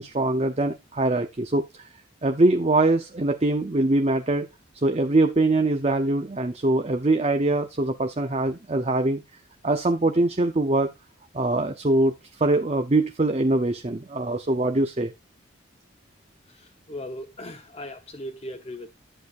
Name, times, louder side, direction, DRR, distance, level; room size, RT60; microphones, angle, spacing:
voice 1, 0.0-1.9 2.2-4.5 4.7-9.2 9.6-10.9 11.3-15.1, right 2 dB, 30° right, 0.7 m, -23 dB
voice 2, 16.5-18.9, left 1 dB, 30° left, 0.9 m, -38 dB
11.0 x 8.0 x 2.4 m
head